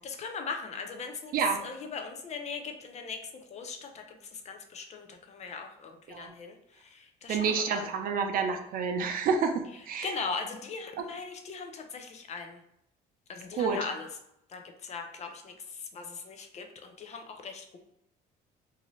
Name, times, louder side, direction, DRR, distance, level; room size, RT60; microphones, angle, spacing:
voice 1, 0.0-1.3 1.6-3.2 3.5-7.9 10.0-12.6 13.3-14.1 14.5-17.8, left 5 dB, 40° left, 5 dB, 0.5 m, -39 dB
voice 2, 7.3-10.1 13.6-13.8, right 5 dB, 60° right, 5 dB, 0.5 m, -29 dB
2.7 x 2.4 x 3.0 m, 0.77 s
cardioid pair, 110°, 17 cm